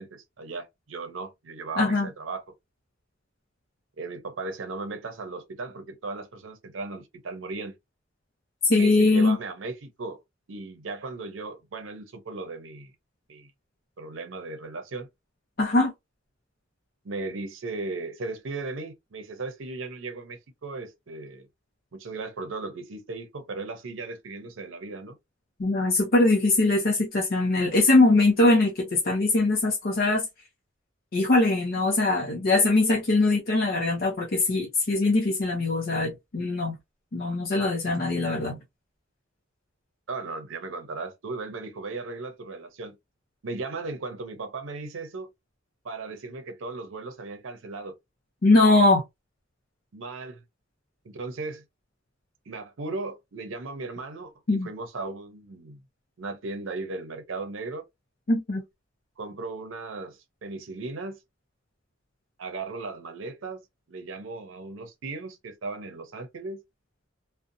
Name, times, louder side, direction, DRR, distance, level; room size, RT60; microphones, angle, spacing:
voice 1, 0.0-2.4 4.0-7.8 8.7-10.2 10.5-12.9 13.3-13.5 14.0-15.1 17.0-21.5 21.9-25.2 40.1-43.0 43.4-45.3 45.8-47.9 49.9-50.4 51.0-51.6 52.5-55.8 56.2-57.8 59.2-61.2 62.4-63.6 63.9-66.6, right 3 dB, 85° right, 0.6 m, -36 dB
voice 2, 1.8-2.1 8.6-9.4 15.6-15.9 25.6-30.3 31.1-36.7 37.1-38.6 48.4-49.0 54.5-54.7 58.3-58.6, left 2 dB, 50° left, 0.6 m, -22 dB
2.6 x 2.1 x 2.5 m
head